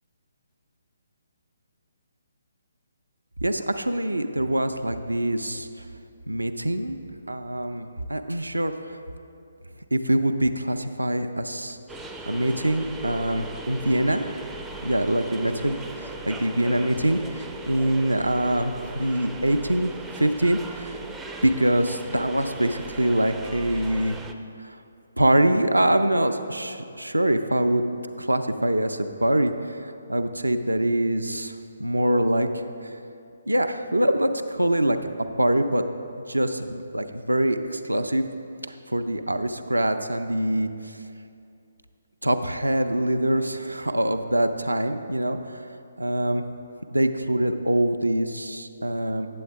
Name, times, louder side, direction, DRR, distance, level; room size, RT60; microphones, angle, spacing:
voice 1, 3.4-5.8 6.3-7.0 7.3-9.0 9.9-11.8 12.3-14.2 14.8-21.0 21.4-24.2 24.6-24.8 25.2-27.8 28.2-33.0 33.5-35.0 35.4-35.8 36.3-38.3 38.9-41.0 42.2-45.6 46.0-46.4 46.9-49.3, right 1 dB, 85° right, 7 dB, 0.4 m, -24 dB
sound 1, 11.9-24.3, right 2 dB, 5° right, 0.3 m, -38 dB
8.4 x 7.7 x 3.4 m, 2.5 s
figure-of-eight pair, 140°, 0 cm